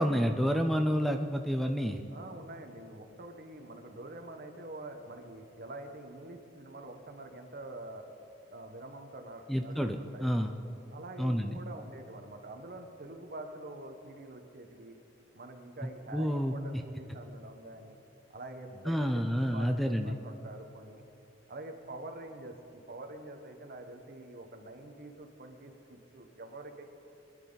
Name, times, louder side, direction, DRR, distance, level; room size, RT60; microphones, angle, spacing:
voice 1, 0.0-2.0 9.5-10.5 11.2-11.6 16.1-16.5 18.9-20.1, equal, ahead, 6 dB, 0.5 m, -29 dB
voice 2, 2.1-8.1 8.4-10.5 10.9-15.0 15.3-18.0 18.3-21.0 21.5-26.8, right 2 dB, 55° right, 5 dB, 1.3 m, -46 dB
22.5 x 11.0 x 4.0 m, 2.8 s
head